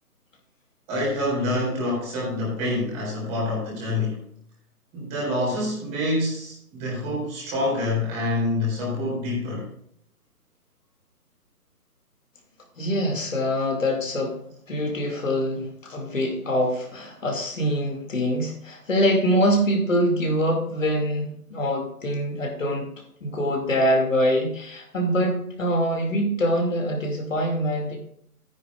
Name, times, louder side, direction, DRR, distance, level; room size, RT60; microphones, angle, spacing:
voice 1, 0.9-4.2 4.9-9.7, left 1 dB, 15° right, -4 dB, 3.9 m, -26 dB
voice 2, 12.8-14.4 14.7-22.9 23.2-28.0, equal, 55° left, 1 dB, 2.6 m, -24 dB
13.5 x 9.8 x 2.5 m, 0.67 s
figure-of-eight pair, 145°, 46 cm